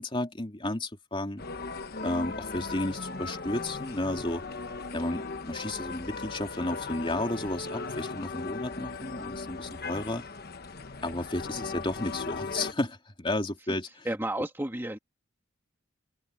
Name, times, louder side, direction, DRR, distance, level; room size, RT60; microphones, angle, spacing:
voice 1, 0.0-1.4 2.0-4.4 4.9-10.2 11.0-13.9, left 1 dB, 25° left, 3.1 m, -32 dB
sound 1, 1.4-12.7, left 4 dB, 50° left, 1.2 m, -38 dB
voice 2, 14.0-15.0, right 1 dB, 10° right, 2.0 m, -31 dB
head